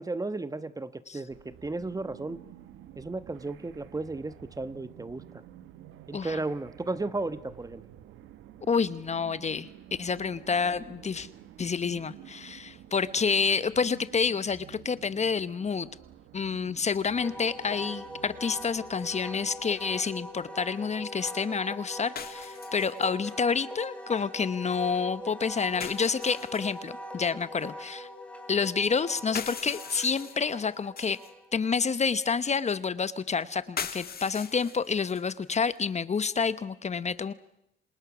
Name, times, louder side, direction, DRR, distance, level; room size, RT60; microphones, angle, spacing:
voice 1, 0.0-2.4 3.0-5.4 6.1-7.8, right 2 dB, 15° right, 14 dB, 1.2 m, -34 dB
sound 1, 1.3-20.5, right 11 dB, 90° right, 1.5 m, -51 dB
voice 2, 8.7-9.7 10.0-11.3 11.6-15.9 16.3-28.1 28.5-31.2 31.5-37.3, left 5 dB, 35° left, 15 dB, 1.0 m, -29 dB
Wind instrument woodwind instrument, 17.1-31.8, equal, 5° left, 3.9 m, -42 dB
sound 2, 19.0-19.1 22.2-23.3 25.8-26.8 29.2-31.3 33.8-35.4, left 7 dB, 50° left, 1.8 m, -40 dB
29.5 x 27.0 x 6.2 m, 0.81 s
cardioid pair, 90°, 20 cm